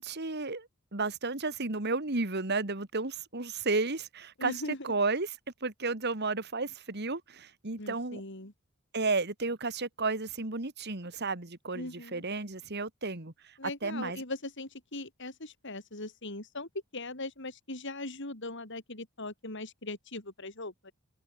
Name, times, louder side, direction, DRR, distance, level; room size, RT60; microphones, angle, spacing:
voice 1, 0.0-4.5 4.8-5.3 5.6-8.2 8.9-14.2, right 3 dB, 50° right, 2.3 m, -33 dB
voice 2, 4.4-4.9 7.8-8.5 11.7-12.2 13.6-20.9, left 2 dB, 60° left, 5.2 m, -40 dB
head